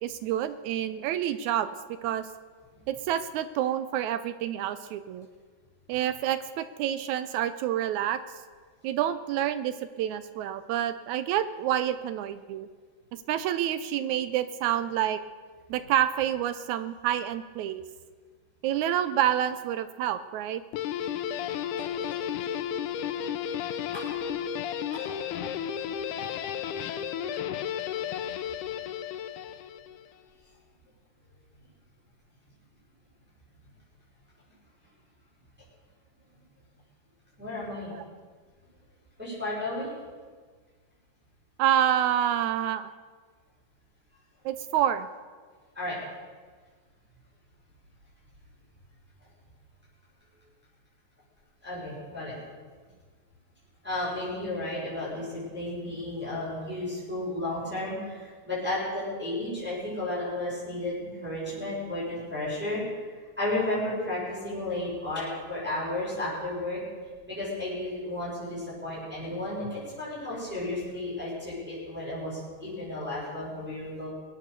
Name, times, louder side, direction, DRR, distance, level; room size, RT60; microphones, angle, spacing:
voice 1, 0.0-1.7 2.0-2.3 2.9-5.3 5.9-8.2 8.8-12.7 13.3-15.2 15.7-17.8 18.6-20.6 37.9-38.0 41.6-42.9 44.5-45.1, right 11 dB, 80° right, 13 dB, 1.8 m, -28 dB
Guitar, 20.7-30.1, left 9 dB, 80° left, 2.2 m, -33 dB
voice 2, 21.8-22.1 23.9-24.2 24.9-25.0 28.1-28.2 37.4-37.9 39.2-39.9 45.7-46.0 51.6-52.4 53.8-62.8 63.4-66.8 67.3-74.1, left 1 dB, 5° right, -9 dB, 6.4 m, -33 dB
21.5 x 9.2 x 6.8 m, 1.5 s
omnidirectional pair, 3.6 m